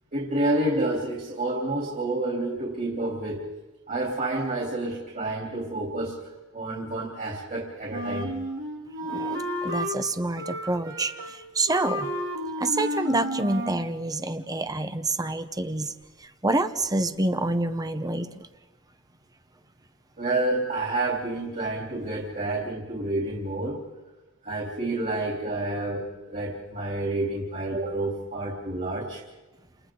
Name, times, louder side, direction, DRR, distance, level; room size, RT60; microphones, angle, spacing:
voice 1, 0.1-3.5 3.9-8.3 20.2-23.8 24.4-29.2, right 2 dB, 40° right, -2 dB, 3.4 m, -29 dB
Wind instrument woodwind instrument, 7.9-10.0 10.4-11.4 11.7-13.9, equal, 60° right, 3.3 m, -32 dB
voice 2, 9.0-12.1 12.6-15.9 16.4-18.3, right 2 dB, 15° right, 9 dB, 1.0 m, -27 dB
30.0 x 28.5 x 3.9 m, 1.1 s
head